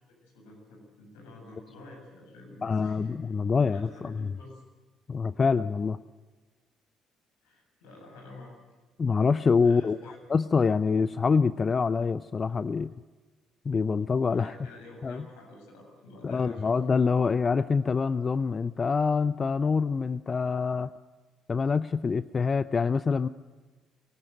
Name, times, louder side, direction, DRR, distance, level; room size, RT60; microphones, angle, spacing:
voice 1, 0.2-3.2 3.6-4.6 7.4-8.5 9.6-10.2 14.3-16.8, left 2 dB, 80° left, 0 dB, 7.5 m, -48 dB
voice 2, 2.6-4.3 5.1-6.0 9.0-12.9 13.6-14.6 15.0-15.2 16.2-20.9 21.5-23.3, left 5 dB, 40° left, 15 dB, 0.6 m, -26 dB
23.5 x 18.0 x 8.0 m, 1.3 s
hypercardioid pair, 50°, 0 cm